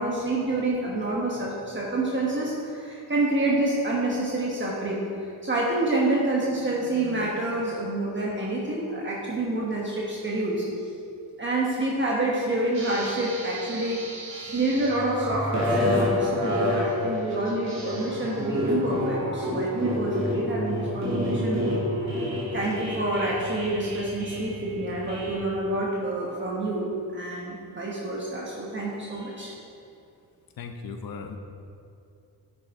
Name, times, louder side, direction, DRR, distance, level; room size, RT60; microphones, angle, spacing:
voice 1, 0.0-5.0 5.4-10.6 11.4-14.0 14.5-21.9 22.5-29.5, right 2 dB, 30° right, -5 dB, 1.2 m, -27 dB
sound 1, 12.7-25.4, left 1 dB, 45° right, 2.4 m, -29 dB
voice 2, 30.6-31.4, left 5 dB, 65° left, 6 dB, 0.9 m, -37 dB
10.0 x 8.2 x 3.7 m, 2.6 s
wide cardioid pair, 130°, 39 cm